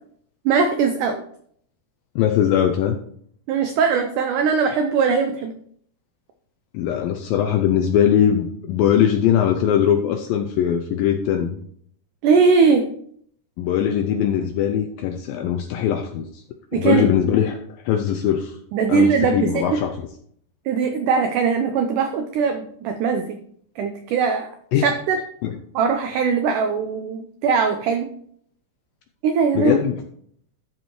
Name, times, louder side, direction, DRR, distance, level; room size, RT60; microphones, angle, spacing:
voice 1, 0.5-1.2 3.5-5.5 12.2-12.9 16.7-17.0 18.7-19.6 20.7-23.4 23.8-24.5 24.8-25.2 25.8-28.1 29.2-29.8, right 5 dB, 85° right, 6 dB, 1.8 m, -20 dB
voice 2, 2.2-3.0 6.7-11.6 13.6-16.4 16.7-17.6 17.9-18.6 18.9-19.9 24.7-24.9 25.4-25.5 29.5-30.0, left 9 dB, 80° left, 5 dB, 2.2 m, -20 dB
13.0 x 4.7 x 4.5 m, 0.64 s
omnidirectional pair, 4.6 m